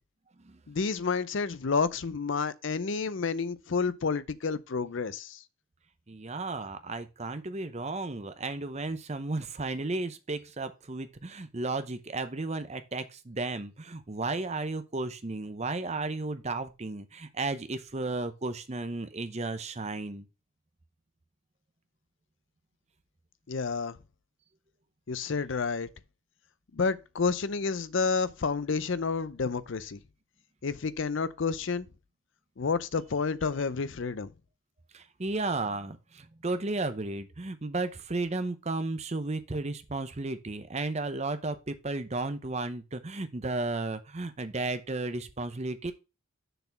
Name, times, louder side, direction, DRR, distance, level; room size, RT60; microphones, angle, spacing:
voice 1, 0.7-5.4 23.5-24.0 25.1-25.9 26.7-30.0 30.6-31.9 32.6-34.3, left 5 dB, 60° left, 0.5 m, -30 dB
voice 2, 6.1-20.2 34.9-45.9, right 2 dB, 30° right, 0.7 m, -34 dB
6.8 x 4.2 x 5.7 m
head